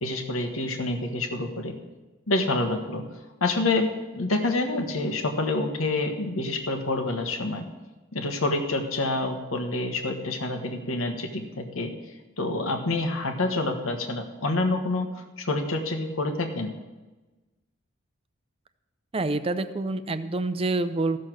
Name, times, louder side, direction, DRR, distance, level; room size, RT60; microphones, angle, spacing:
voice 1, 0.0-1.7 2.3-3.0 3.4-3.9 4.1-7.6 8.1-11.9 12.4-15.1 15.4-16.7, left 2 dB, 85° left, 5 dB, 1.4 m, -27 dB
voice 2, 19.1-21.2, right 2 dB, 30° right, 11 dB, 0.5 m, -27 dB
14.0 x 6.5 x 6.2 m, 1.2 s
head